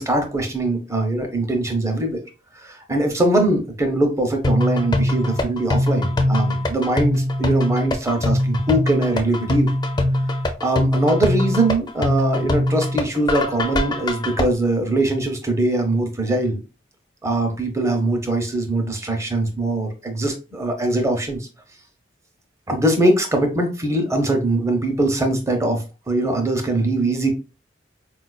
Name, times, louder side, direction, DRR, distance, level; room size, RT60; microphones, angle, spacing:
voice 1, 0.0-2.2 2.6-9.7 10.6-16.6 17.2-21.5 22.7-27.3, right 1 dB, 15° right, 4 dB, 0.7 m, -22 dB
sound 1, 4.4-14.4, left 1 dB, 25° left, 0.4 m, -22 dB
4.3 x 2.3 x 2.3 m, 0.31 s
head